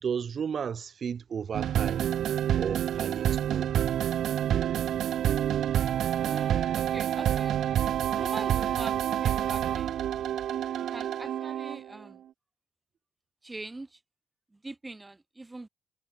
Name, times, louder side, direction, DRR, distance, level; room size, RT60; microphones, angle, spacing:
voice 1, 0.0-2.1 2.6-3.7, right 7 dB, 50° right, 2.9 m, -33 dB
sound 1, 1.5-12.0, right 10 dB, 70° right, 0.4 m, -28 dB
voice 2, 6.1-7.6 8.1-10.0 10.9-12.2 13.4-14.0 14.5-15.7, right 2 dB, 15° right, 5.6 m, -43 dB
cardioid pair, 90°, 0 cm